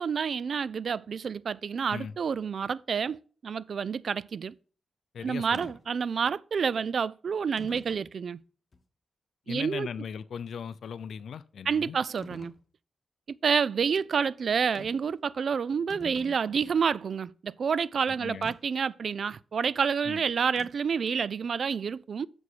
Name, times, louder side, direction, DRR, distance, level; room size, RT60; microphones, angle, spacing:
voice 1, 0.0-4.5 5.2-8.4 9.5-9.9 11.7-12.5 13.4-22.3, right 6 dB, 65° right, 0.3 m, -29 dB
voice 2, 5.1-5.7 9.5-12.0 18.2-18.5 20.0-20.2, left 7 dB, 75° left, 0.4 m, -38 dB
sound 1, 5.5-5.8 6.7-6.8 7.6-8.1 8.7-8.8 12.2-12.6 14.7-15.1 15.4-15.5 15.7-16.8 18.4-18.6 20.6-21.0, left 3 dB, 45° left, 1.1 m, -47 dB
6.9 x 4.8 x 6.1 m
cardioid pair, 70°, 0 cm